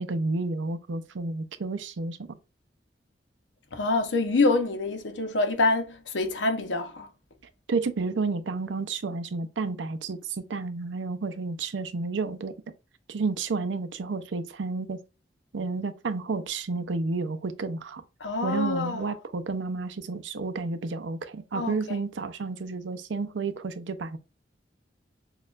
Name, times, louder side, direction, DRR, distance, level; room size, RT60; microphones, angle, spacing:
voice 1, 0.0-2.3 7.7-12.5 13.1-15.0 15.5-18.0 18.4-24.2, right 3 dB, 85° right, 0.5 m, -31 dB
voice 2, 3.7-7.1 18.2-19.0 21.5-21.7, left 3 dB, 80° left, 0.8 m, -26 dB
6.3 x 2.4 x 2.4 m
head